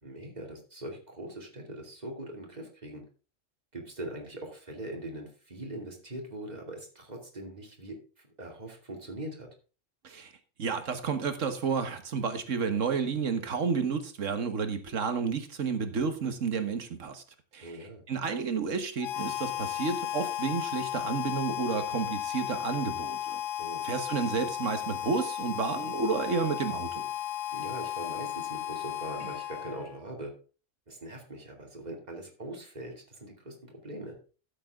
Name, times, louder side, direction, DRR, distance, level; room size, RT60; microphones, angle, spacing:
voice 1, 0.0-3.0 3.7-8.0 8.4-9.5 17.6-18.0 23.6-23.8 27.5-30.3 30.9-34.2, right 1 dB, 35° right, 1 dB, 2.7 m, -41 dB
voice 2, 10.6-17.2 17.5-17.7 18.1-23.4 23.8-27.0, right 5 dB, 80° right, 8 dB, 1.7 m, -31 dB
Harmonica, 19.0-30.0, left 12 dB, 85° left, 1.1 m, -35 dB
13.0 x 7.7 x 3.6 m, 0.35 s
omnidirectional pair, 1.3 m